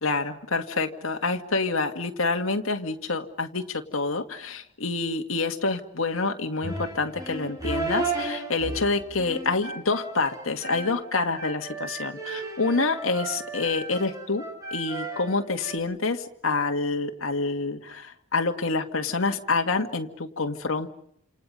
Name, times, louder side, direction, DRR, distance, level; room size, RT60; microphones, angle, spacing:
voice 1, 0.0-14.5 14.7-20.9, left 3 dB, 80° left, 5 dB, 1.9 m, -27 dB
sound 1, 6.6-15.8, right 3 dB, 15° right, 5.8 m, -34 dB
30.0 x 27.5 x 5.5 m, 0.70 s
head